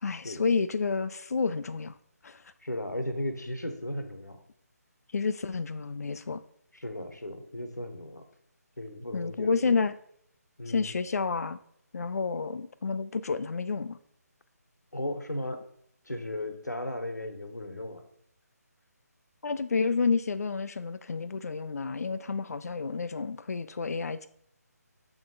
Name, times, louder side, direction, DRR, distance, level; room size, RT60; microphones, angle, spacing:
voice 1, 0.0-2.0 2.2-2.4 5.1-6.4 9.1-9.9 10.7-11.6 11.9-14.0 19.4-24.3, left 4 dB, 65° left, 13 dB, 0.3 m, -30 dB
voice 2, 2.6-4.4 6.7-8.2 8.8-9.7 10.6-10.9 14.9-15.6 16.0-18.0, left 1 dB, 90° left, 7 dB, 1.0 m, -36 dB
6.9 x 3.8 x 3.8 m, 0.69 s
figure-of-eight pair, 150°, 9 cm